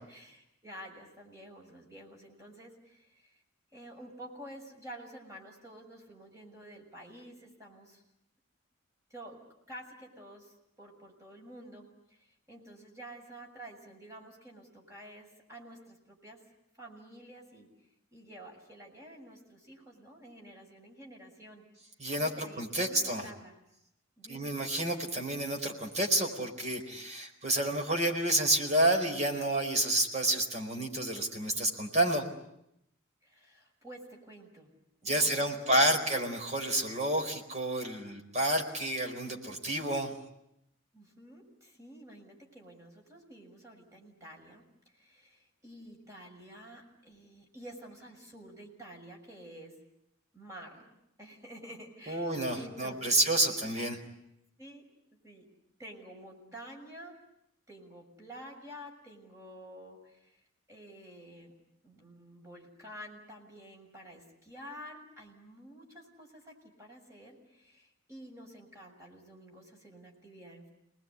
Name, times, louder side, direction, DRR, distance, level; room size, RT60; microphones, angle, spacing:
voice 1, 0.1-3.4 3.7-8.0 9.1-9.4 9.7-16.4 16.8-17.7 18.1-21.7 22.2-23.5 24.2-24.5 33.2-34.7 35.0-36.1 40.9-44.6 44.9-49.8 50.3-50.9 51.2-53.6 54.6-54.8 55.2-55.5 55.8-57.2 57.7-60.4 60.7-61.5 61.8-70.7, right 1 dB, 15° right, 0 dB, 6.8 m, -50 dB
voice 2, 22.0-23.2 24.3-32.2 35.0-40.1 52.1-54.0, right 1 dB, 35° right, 2 dB, 4.7 m, -29 dB
28.5 x 20.5 x 9.6 m, 0.79 s
head